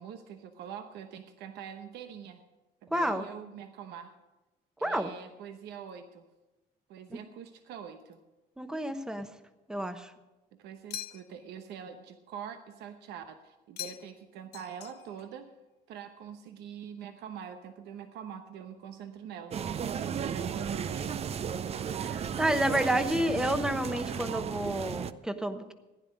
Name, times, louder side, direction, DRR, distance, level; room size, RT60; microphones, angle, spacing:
voice 1, 0.0-2.4 2.8-4.1 4.8-6.3 6.9-8.2 10.6-15.5 15.9-21.4, right 8 dB, 80° right, 8 dB, 0.9 m, -44 dB
voice 2, 2.9-3.2 4.8-5.1 8.6-9.3 9.7-10.1 22.0-25.7, right 1 dB, 5° right, 9 dB, 1.0 m, -30 dB
sound 1, 10.9-11.5 13.8-14.3 14.5-15.3, left 12 dB, 70° left, 0.7 m, -42 dB
sound 2, 19.5-25.1, right 7 dB, 40° right, 0.5 m, -34 dB
15.5 x 10.0 x 5.3 m, 1.1 s
cardioid pair, 110°, 17 cm